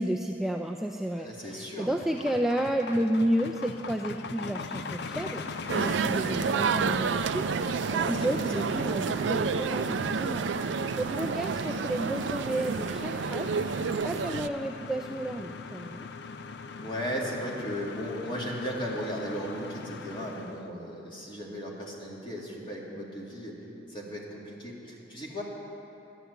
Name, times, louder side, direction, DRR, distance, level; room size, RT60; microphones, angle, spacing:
voice 1, 0.0-10.5 11.0-16.1, right 1 dB, ahead, 2 dB, 0.4 m, -32 dB
voice 2, 1.2-1.9 7.9-8.2 8.6-8.7 16.8-23.6 23.9-25.4, equal, 25° left, -4 dB, 2.4 m, -36 dB
sound 1, 1.3-20.7, left 4 dB, 65° left, 0.5 m, -41 dB
sound 2, 5.7-14.5, right 5 dB, 70° right, 0.4 m, -29 dB
11.5 x 11.5 x 8.0 m, 2.9 s
head